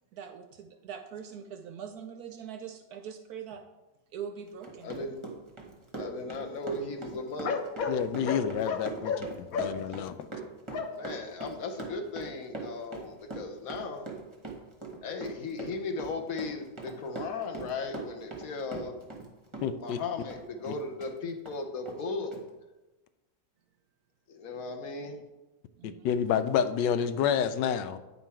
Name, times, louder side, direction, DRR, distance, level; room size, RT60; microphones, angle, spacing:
voice 1, 0.1-3.6 4.1-5.0 25.8-26.1, right 7 dB, 70° right, 7 dB, 1.0 m, -42 dB
Run, 4.5-19.3 19.5-21.1 21.5-21.6 21.9-22.0 22.3-22.4, right 3 dB, 20° right, 1.0 m, -41 dB
voice 2, 4.8-5.1 6.0-8.0 8.2-9.2 9.5-10.0 10.7-14.1 15.0-18.9 19.8-22.3 24.3-25.3, left 4 dB, 55° left, 5 dB, 1.3 m, -36 dB
voice 3, 7.9-9.1 9.6-10.3 19.6-20.0 20.7-20.8 25.8-28.0, left 8 dB, 80° left, 11 dB, 1.2 m, -29 dB
9.4 x 5.5 x 4.4 m, 1.1 s
omnidirectional pair, 1.9 m